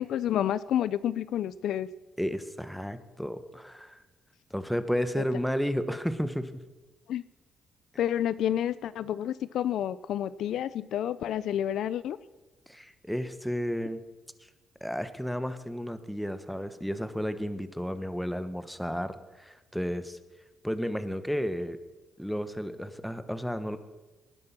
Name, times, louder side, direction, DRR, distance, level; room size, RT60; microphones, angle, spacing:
voice 1, 0.0-1.9 5.2-5.3 7.1-7.2 8.0-12.2, left 10 dB, 75° left, 17 dB, 0.5 m, -29 dB
voice 2, 2.2-4.0 4.5-6.6 12.7-14.0 14.8-20.2 20.6-21.8 22.2-23.8, equal, ahead, 11 dB, 1.3 m, -32 dB
19.5 x 11.0 x 6.0 m, 1.2 s
cardioid pair, 90°, 0 cm